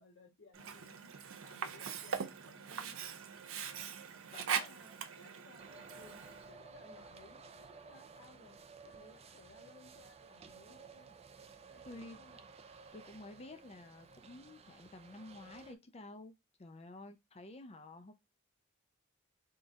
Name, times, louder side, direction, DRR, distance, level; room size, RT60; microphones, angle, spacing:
voice 1, 0.0-3.0 4.5-6.2 6.5-11.2 11.7-12.5, left 3 dB, 70° left, 1.6 m, -61 dB
Sink (filling or washing), 0.5-6.5, right 7 dB, 85° right, 0.6 m, -41 dB
voice 2, 4.3-4.7 11.9-12.2 12.9-16.3 16.6-18.1, left 2 dB, 30° left, 0.5 m, -51 dB
sound 1, 5.6-15.8, right 4 dB, 30° right, 0.4 m, -55 dB
3.8 x 2.4 x 3.9 m
head